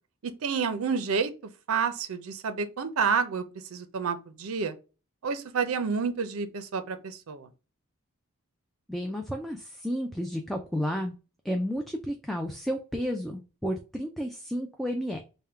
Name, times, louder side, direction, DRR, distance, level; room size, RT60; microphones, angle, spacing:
voice 1, 0.2-1.3 1.7-3.4 3.7-4.8 5.2-7.5, right 5 dB, 70° right, 0.5 m, -29 dB
voice 2, 8.9-11.1 11.4-15.2, equal, ahead, 0.3 m, -32 dB
3.5 x 2.2 x 4.3 m
head